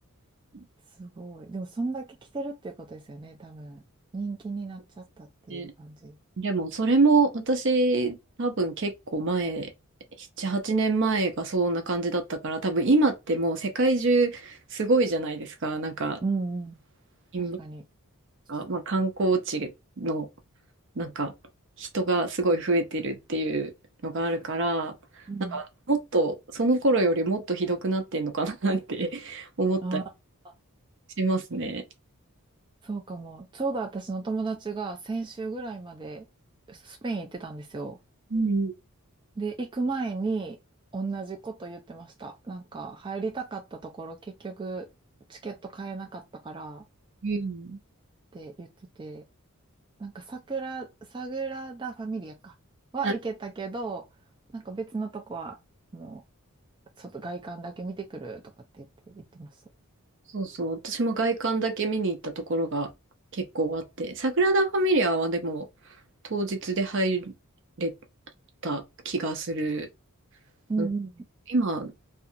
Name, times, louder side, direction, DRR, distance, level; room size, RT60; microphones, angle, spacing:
voice 1, 1.0-3.8 4.1-6.2 16.2-16.8 17.4-17.8 25.3-25.6 29.8-30.0 30.4-30.5 32.8-36.3 36.7-38.0 39.4-40.6 40.9-44.9 45.3-46.8 48.3-48.7 49.0-49.2 50.0-52.5 52.9-54.0 54.5-55.6 55.9-56.2 57.0-58.4 58.8-59.6 70.7-71.2, right 3 dB, 20° right, 0.3 m, -34 dB
voice 2, 6.4-9.7 10.2-16.2 17.3-17.6 18.5-19.7 20.0-20.3 21.0-21.3 21.8-23.7 24.0-24.9 25.5-30.0 31.2-31.8 38.3-38.7 47.2-47.8 53.0-53.1 60.3-62.9 63.3-65.7 66.3-67.3 67.8-67.9 68.6-69.9 70.8-70.9 71.5-71.9, right 2 dB, 55° right, 0.6 m, -26 dB
2.5 x 2.4 x 2.6 m
head